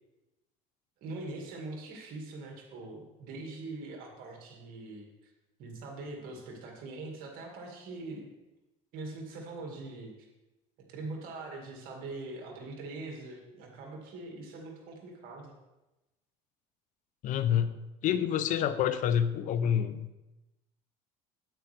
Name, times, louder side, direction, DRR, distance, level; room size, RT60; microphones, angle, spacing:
voice 1, 1.0-5.1 5.6-8.3 8.9-10.1 10.9-15.5, right 2 dB, 65° right, 1 dB, 2.2 m, -42 dB
voice 2, 17.2-17.7 18.0-20.2, left 9 dB, 55° left, 13 dB, 0.7 m, -28 dB
8.9 x 8.7 x 3.4 m, 1.0 s
supercardioid pair, 110°, 16 cm